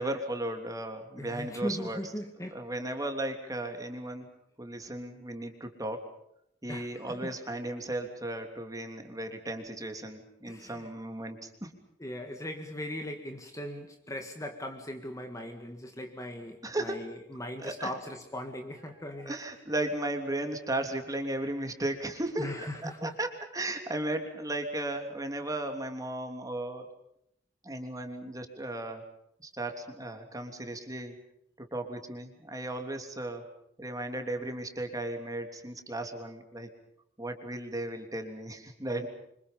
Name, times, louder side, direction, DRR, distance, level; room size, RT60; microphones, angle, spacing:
voice 1, 0.0-2.0 2.5-4.3 4.6-6.0 6.6-11.8 16.6-17.1 17.6-17.9 19.3-26.9 27.6-29.0 29.4-31.2 31.6-33.5 33.8-36.7 37.2-39.1, right 1 dB, 20° right, 5 dB, 3.2 m, -35 dB
voice 2, 1.2-2.6 6.7-7.3 10.5-10.9 12.0-19.4 22.4-23.2, left 1 dB, 15° left, 4 dB, 1.9 m, -39 dB
28.5 x 25.5 x 5.4 m, 0.76 s
head